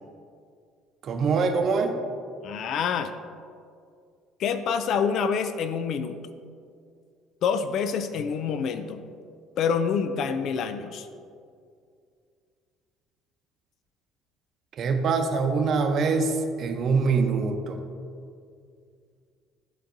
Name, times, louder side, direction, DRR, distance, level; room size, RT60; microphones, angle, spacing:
voice 1, 1.0-1.9 14.8-16.3 16.6-17.8, right 4 dB, 50° right, 5 dB, 0.7 m, -24 dB
voice 2, 2.4-3.1 4.4-6.1 7.4-9.0 9.6-11.1, left 6 dB, 60° left, 9 dB, 0.4 m, -27 dB
11.5 x 3.9 x 2.6 m, 2.3 s
cardioid pair, 100°, 0 cm